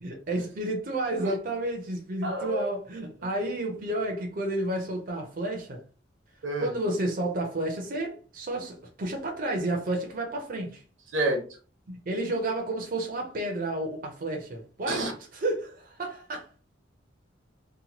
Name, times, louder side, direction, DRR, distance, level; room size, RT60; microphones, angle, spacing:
voice 1, 0.0-5.8 6.6-10.8 11.9-15.0 15.3-16.5, right 1 dB, 45° right, 0.6 m, -31 dB
voice 2, 2.2-2.7 6.4-6.7 11.1-11.4 14.9-15.1, right 2 dB, 90° right, 0.9 m, -28 dB
2.9 x 2.2 x 2.8 m
head